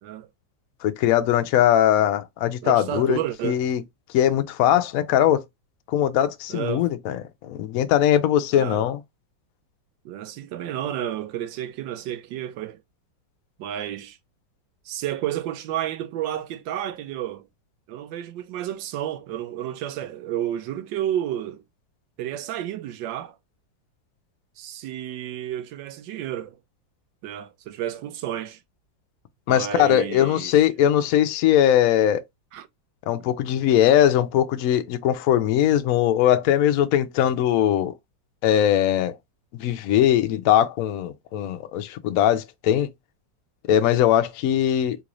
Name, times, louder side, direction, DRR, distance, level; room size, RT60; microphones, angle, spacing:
voice 1, 0.8-3.2 3.4-3.8 4.1-5.4 5.9-9.0 29.5-32.2 33.1-37.9 38.4-39.2 39.6-42.9 43.7-45.0, left 11 dB, 75° left, 0.8 m, -20 dB
voice 2, 2.6-3.6 6.5-6.9 8.5-8.9 10.0-12.8 13.6-14.2 14.8-17.5 17.9-21.6 22.2-23.4 24.6-26.6 27.2-28.6 29.5-30.5 32.5-32.7, right 11 dB, 80° right, 1.3 m, -31 dB
3.8 x 2.4 x 2.9 m
omnidirectional pair, 2.0 m